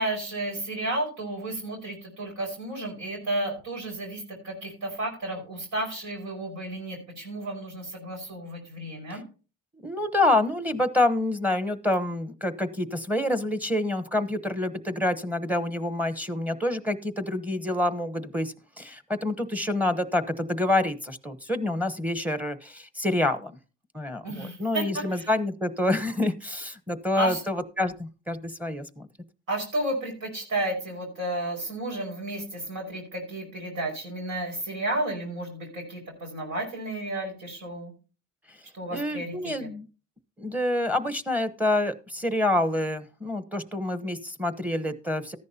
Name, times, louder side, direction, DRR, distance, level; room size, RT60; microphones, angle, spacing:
voice 1, 0.0-9.2 24.2-25.3 27.2-27.4 29.5-37.9 38.7-39.7, right 1 dB, 80° right, 1 dB, 5.4 m, -32 dB
voice 2, 9.8-23.6 23.9-29.1 38.5-38.6 38.9-39.9 40.4-45.4, left 1 dB, 5° right, 11 dB, 1.0 m, -27 dB
14.0 x 10.5 x 2.8 m, 0.35 s
cardioid pair, 90°, 30 cm